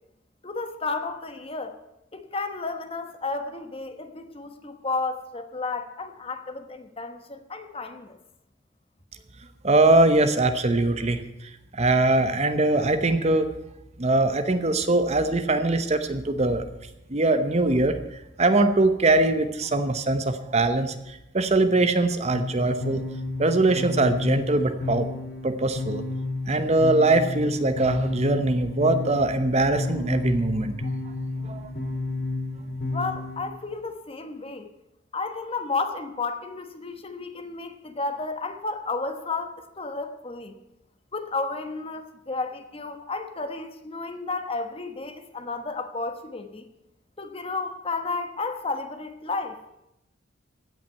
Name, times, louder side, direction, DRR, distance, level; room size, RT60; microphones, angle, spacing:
voice 1, 0.4-1.8 2.1-8.2 32.9-34.7 35.1-40.5 41.1-46.6 47.2-49.6, left 3 dB, 30° left, 7 dB, 1.2 m, -32 dB
voice 2, 9.6-11.2 11.7-13.5 14.0-16.6 17.1-18.0 18.4-23.0 23.4-25.1 25.4-26.0 26.5-30.7 31.4-31.7, right 2 dB, 35° right, 9 dB, 0.9 m, -22 dB
sound 1, 22.3-33.4, left 2 dB, 75° left, 2.7 m, -32 dB
16.0 x 5.9 x 9.4 m, 0.88 s
head